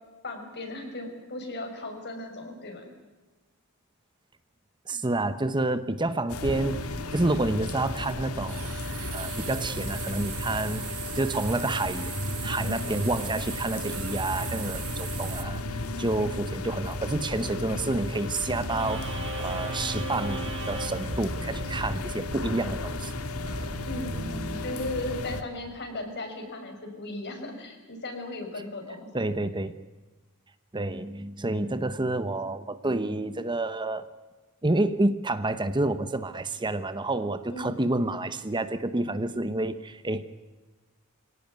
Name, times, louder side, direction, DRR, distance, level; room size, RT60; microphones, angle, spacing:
voice 1, 0.2-2.9 23.9-29.1 37.5-37.8, left 2 dB, 50° left, 4 dB, 6.0 m, -36 dB
voice 2, 4.9-8.8 9.1-12.1 12.4-23.1 29.1-29.7 30.7-34.1 34.6-40.3, right 2 dB, 20° right, 12 dB, 0.9 m, -29 dB
sound 1, 6.0-6.1 7.1-7.5 8.5-15.4, right 14 dB, 80° right, 1.7 m, -39 dB
sound 2, 6.3-25.4, left 2 dB, 90° left, 1.8 m, -34 dB
sound 3, 18.7-25.5, right 2 dB, 60° right, 4.9 m, -37 dB
25.5 x 18.0 x 9.5 m, 1.2 s
head